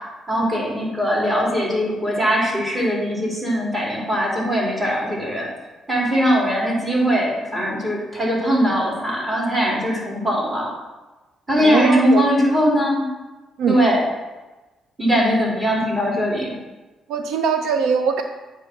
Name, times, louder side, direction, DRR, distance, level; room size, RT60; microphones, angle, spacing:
voice 1, 0.3-5.5 5.9-10.7 11.5-13.1 13.7-14.0 15.0-16.6, equal, 20° right, -4 dB, 2.5 m, -20 dB
voice 2, 11.6-12.3 13.6-13.8 17.1-18.2, right 5 dB, 85° right, 6 dB, 0.4 m, -21 dB
8.1 x 3.0 x 5.9 m, 1.2 s
cardioid pair, 90°, 0 cm